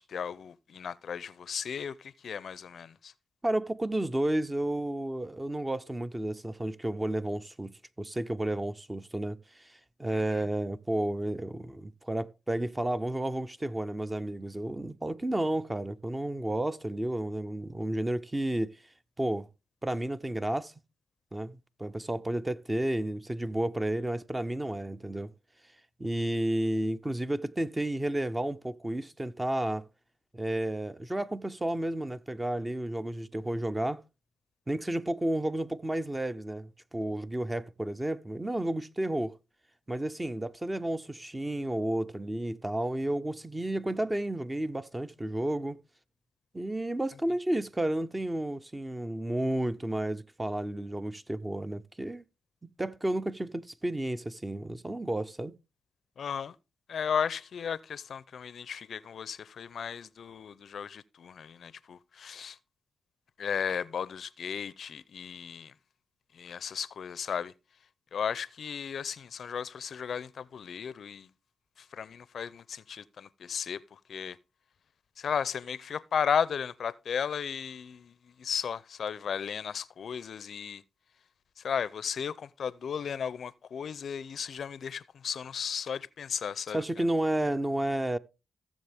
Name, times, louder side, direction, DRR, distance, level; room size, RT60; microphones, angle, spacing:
voice 1, 0.0-3.1 10.1-10.4 56.2-56.5 56.9-62.6 63.4-65.7 66.4-67.5 68.1-71.3 71.9-73.8 74.1-74.4 75.2-78.1 78.4-80.8 81.6-86.8, left 7 dB, 65° left, 0.5 m, -35 dB
voice 2, 3.4-18.8 19.2-19.5 19.8-20.7 21.3-25.3 26.0-29.8 30.3-34.0 34.7-39.3 39.9-45.8 46.5-52.2 52.6-55.5 86.7-88.2, right 1 dB, 15° right, 0.7 m, -32 dB
16.0 x 7.3 x 3.5 m
cardioid pair, 80°, 0 cm